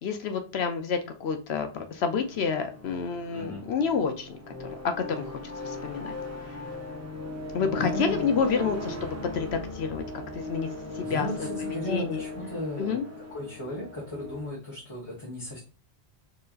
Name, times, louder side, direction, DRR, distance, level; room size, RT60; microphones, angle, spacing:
voice 1, 0.0-6.2 6.5-6.6 7.5-10.0 10.3-10.7 10.9-11.5 11.9-12.2 12.8-13.1, left 6 dB, 70° left, 7 dB, 0.9 m, -29 dB
sound 1, 1.8-14.5, left 2 dB, 15° right, 1.0 m, -38 dB
voice 2, 3.3-3.7 7.7-8.2 11.0-13.0 13.3-15.6, left 1 dB, 25° left, -6 dB, 1.3 m, -35 dB
4.5 x 3.2 x 2.4 m, 0.35 s
omnidirectional pair, 1.1 m